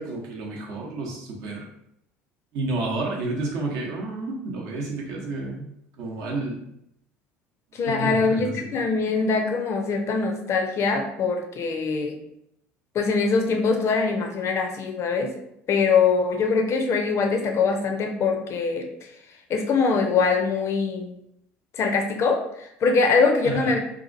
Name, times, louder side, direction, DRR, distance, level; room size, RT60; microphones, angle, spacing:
voice 1, 0.0-1.7 2.5-5.7 6.0-6.6 7.9-8.8 23.4-23.7, right 2 dB, 60° right, -2 dB, 0.7 m, -30 dB
voice 2, 7.7-12.2 12.9-15.3 15.7-19.1 19.5-21.2 21.7-23.8, left 4 dB, 40° left, 4 dB, 0.5 m, -23 dB
2.8 x 2.4 x 2.5 m, 0.77 s
figure-of-eight pair, 60°, 7 cm